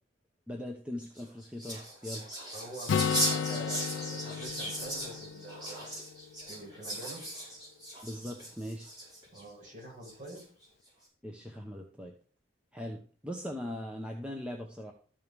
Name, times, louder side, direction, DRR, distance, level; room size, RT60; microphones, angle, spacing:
voice 1, 0.5-2.3 8.0-8.9 11.2-12.1 12.7-14.9, left 1 dB, 5° right, 1 dB, 0.9 m, -40 dB
sound 1, 1.0-9.4 10.0-10.6, right 1 dB, 25° right, 5.2 m, -37 dB
voice 2, 2.1-5.9 6.5-7.2 9.3-10.4 12.9-13.0, right 2 dB, 40° right, -4 dB, 5.4 m, -46 dB
Acoustic guitar, 2.9-6.6, left 7 dB, 75° left, 0.3 m, -34 dB
13.0 x 5.4 x 4.7 m, 0.41 s
head